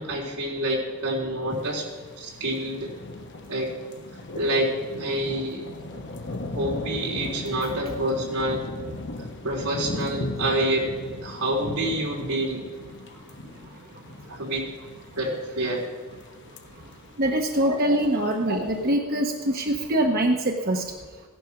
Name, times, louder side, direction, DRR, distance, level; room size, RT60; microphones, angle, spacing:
voice 1, 0.0-1.8 2.2-2.9 3.5-3.7 4.3-5.6 6.5-8.7 9.4-10.9 11.2-12.7 14.3-14.7 15.2-15.9 17.6-17.8 18.5-18.9, right 1 dB, 85° right, -2 dB, 3.6 m, -27 dB
sound 1, 1.5-18.9, left 2 dB, 50° left, 1.0 m, -38 dB
voice 2, 17.2-20.8, right 1 dB, 40° right, 2 dB, 1.0 m, -24 dB
16.0 x 10.0 x 5.9 m, 1.4 s
head